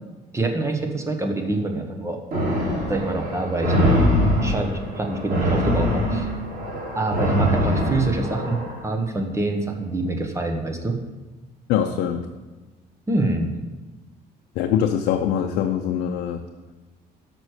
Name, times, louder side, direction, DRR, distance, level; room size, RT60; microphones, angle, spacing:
voice 1, 0.3-2.2 2.9-4.0 4.4-6.3 6.9-11.0 13.1-13.5, right 2 dB, 15° right, 4 dB, 1.2 m, -25 dB
sound 1, 2.3-8.7, equal, 60° right, 3.1 m, -23 dB
voice 2, 11.7-12.2 14.6-16.4, left 9 dB, 85° left, 4 dB, 0.6 m, -23 dB
6.2 x 6.2 x 6.5 m, 1.2 s
cardioid pair, 110°, 17 cm